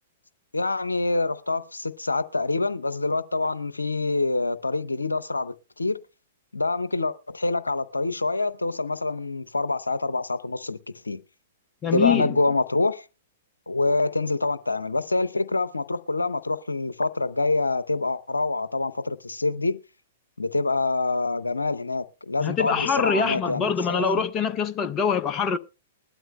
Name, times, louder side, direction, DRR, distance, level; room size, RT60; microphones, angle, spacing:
voice 1, 0.5-6.0 6.5-11.2 11.9-13.0 13.7-19.8 20.4-24.2, left 3 dB, 80° left, 0.7 m, -26 dB
voice 2, 11.8-12.4 22.4-25.6, left 6 dB, 25° left, 0.6 m, -24 dB
20.5 x 12.0 x 2.2 m
figure-of-eight pair, 105°, 0 cm